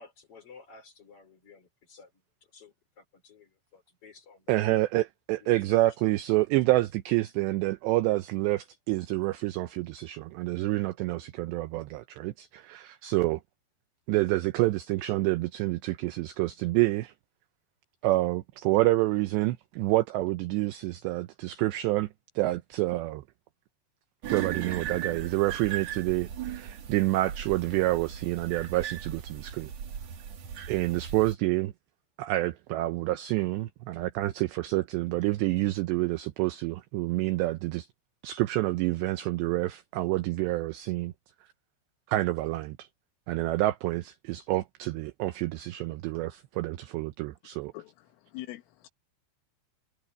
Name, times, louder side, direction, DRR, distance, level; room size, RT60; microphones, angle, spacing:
voice 1, 0.0-2.2 2.5-4.6 5.4-5.9, left 4 dB, 30° left, 4.3 m, -54 dB
voice 2, 4.5-13.4 14.1-17.1 18.0-22.1 22.4-23.2 24.3-29.7 30.7-31.7 32.2-37.9 38.2-41.1 42.1-42.9 43.3-47.7, right 18 dB, 85° right, 2.4 m, -28 dB
sound 1, 24.2-31.3, right 9 dB, 60° right, 1.8 m, -38 dB
voice 3, 47.7-48.9, left 17 dB, 80° left, 3.7 m, -43 dB
omnidirectional pair, 5.8 m